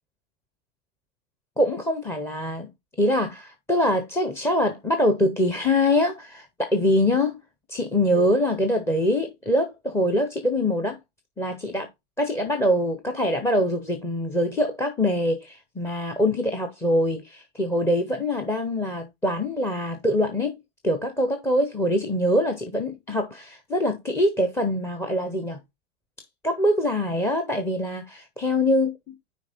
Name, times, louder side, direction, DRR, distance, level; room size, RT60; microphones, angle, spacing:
voice 1, 1.6-2.7 3.0-7.4 7.7-11.0 11.4-11.9 12.2-20.5 20.8-25.6 26.4-28.9, left 1 dB, 5° left, 0.6 m, -24 dB
5.8 x 4.4 x 4.0 m
hypercardioid pair, 125°, 39 cm